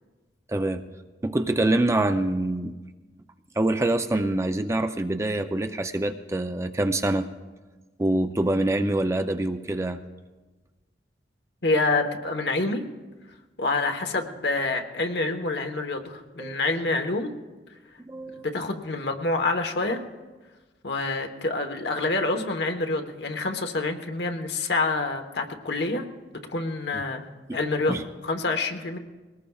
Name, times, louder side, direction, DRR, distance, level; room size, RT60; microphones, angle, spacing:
voice 1, 0.5-0.8 1.2-2.7 3.6-7.3 8.0-10.0 16.4-16.5 18.1-18.5 26.9-27.0 27.5-27.6 27.9-28.0, right 1 dB, 15° right, 8 dB, 0.5 m, -25 dB
voice 2, 11.6-12.9 13.6-17.4 18.4-20.0 20.8-26.0 26.5-27.2 27.5-28.0 28.2-29.0, left 3 dB, 75° left, 4 dB, 1.2 m, -27 dB
22.0 x 19.0 x 2.4 m, 1.3 s
head